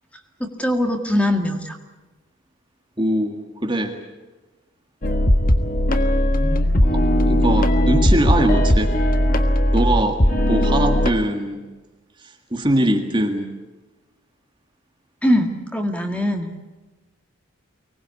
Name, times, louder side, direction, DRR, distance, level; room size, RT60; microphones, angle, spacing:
voice 1, 0.4-1.8 15.2-16.5, left 1 dB, 5° left, 3 dB, 2.0 m, -21 dB
voice 2, 3.0-4.0 6.8-9.0 9.7-10.2 10.5-11.6 12.2-13.5, right 1 dB, 20° right, 3 dB, 1.8 m, -22 dB
sound 1, 5.0-11.1, equal, 40° left, 1.5 m, -18 dB
24.5 x 19.5 x 8.4 m, 1.2 s
head